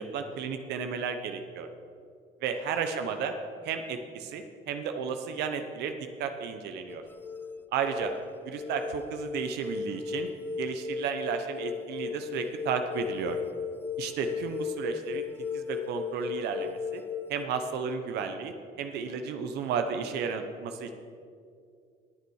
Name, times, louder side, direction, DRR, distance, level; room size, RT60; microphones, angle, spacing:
voice 1, 0.0-1.7 2.4-3.3 3.6-7.0 7.7-8.1 8.4-10.3 10.6-13.4 14.0-15.2 15.5-17.0 17.3-20.9, right 6 dB, 80° right, 7 dB, 0.9 m, -33 dB
sound 1, 6.9-17.5, left 6 dB, 10° left, 0.4 m, -36 dB
20.0 x 7.0 x 4.8 m, 2.3 s
cardioid pair, 110°, 17 cm